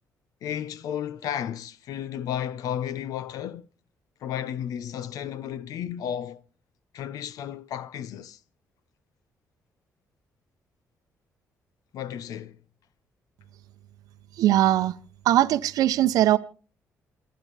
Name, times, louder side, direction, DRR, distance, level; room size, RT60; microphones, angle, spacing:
voice 1, 0.4-3.7 4.2-6.4 6.9-8.4 11.9-12.6, left 9 dB, 80° left, 0.8 m, -33 dB
voice 2, 14.4-14.9 15.2-16.4, right 13 dB, 80° right, 0.7 m, -20 dB
28.5 x 10.5 x 3.3 m
cardioid pair, 80°, 6 cm